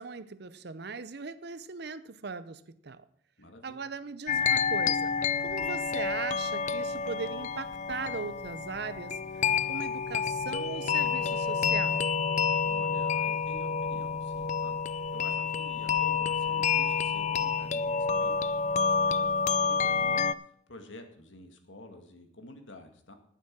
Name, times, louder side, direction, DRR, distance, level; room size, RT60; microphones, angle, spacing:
voice 1, 0.0-3.0 3.6-5.2 5.4-12.1, right 4 dB, 55° right, 0.7 m, -39 dB
voice 2, 3.4-3.9 12.6-23.1, left 1 dB, 75° left, 2.0 m, -50 dB
sound 1, 4.3-20.3, left 6 dB, 35° left, 0.4 m, -29 dB
10.5 x 9.4 x 6.0 m
head